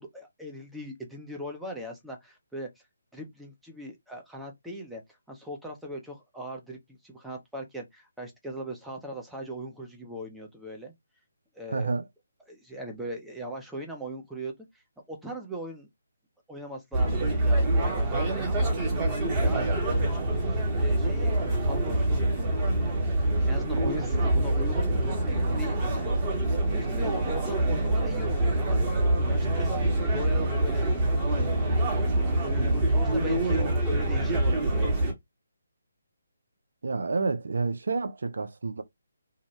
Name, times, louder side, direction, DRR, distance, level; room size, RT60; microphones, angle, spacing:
voice 1, 0.0-2.7 3.1-5.0 5.3-10.9 11.5-11.9 12.5-14.5 15.1-15.9 16.5-18.7 19.2-20.4 20.8-21.4 21.6-22.5 23.2-26.1 26.6-31.5 32.0-35.1, equal, 5° right, 0.7 m, -39 dB
voice 2, 11.7-12.0 31.2-31.5 36.8-38.8, right 4 dB, 65° right, 0.4 m, -29 dB
sound 1, 16.9-35.1, right 1 dB, 20° right, 1.1 m, -25 dB
2.7 x 2.1 x 3.0 m
figure-of-eight pair, 145°, 0 cm